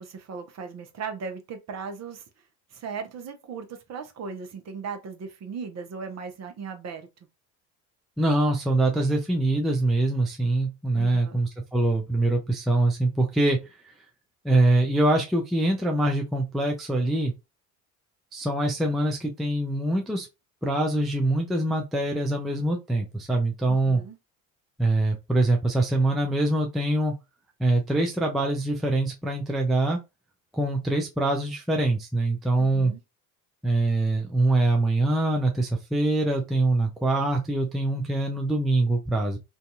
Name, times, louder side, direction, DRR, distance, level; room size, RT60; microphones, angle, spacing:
voice 1, 0.0-2.2 2.7-7.1 10.9-11.4 23.7-24.2 32.6-33.0, right 5 dB, 35° right, 0.8 m, -37 dB
voice 2, 8.2-13.6 14.4-17.3 18.3-20.3 20.6-24.0 24.8-27.1 27.6-30.0 30.5-32.9 33.6-39.4, right 2 dB, ahead, 0.4 m, -24 dB
2.6 x 2.3 x 2.4 m
hypercardioid pair, 65°, 48 cm